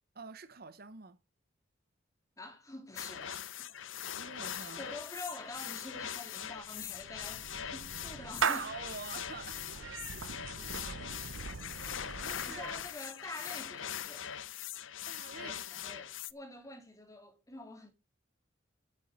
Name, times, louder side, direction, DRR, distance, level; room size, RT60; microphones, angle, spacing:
voice 1, 0.1-1.2 4.1-4.8 8.6-9.6 9.9-10.1 10.8-11.4 12.2-12.8 15.1-15.6, right 4 dB, 50° right, 0.9 m, -47 dB
voice 2, 2.4-4.0 4.4-8.7 10.6-10.9 12.4-14.3 15.4-17.9, left 2 dB, 15° left, 2.9 m, -47 dB
sound 1, 3.0-16.3, left 9 dB, 75° left, 0.7 m, -42 dB
Clapping / Meow, 6.5-13.0, right 6 dB, 80° right, 0.8 m, -40 dB
9.9 x 8.3 x 7.0 m
head